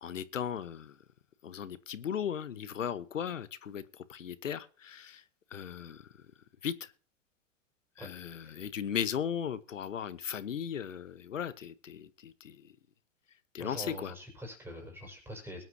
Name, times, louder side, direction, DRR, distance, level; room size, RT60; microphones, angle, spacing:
voice 1, 0.0-0.9 1.4-3.8 4.1-5.2 5.5-6.0 6.6-6.9 8.0-12.6 13.5-14.1, left 8 dB, 85° left, 1.2 m, -37 dB
voice 2, 13.6-15.6, equal, 5° right, 5.8 m, -44 dB
22.0 x 9.3 x 2.8 m
hypercardioid pair, 105°, 37 cm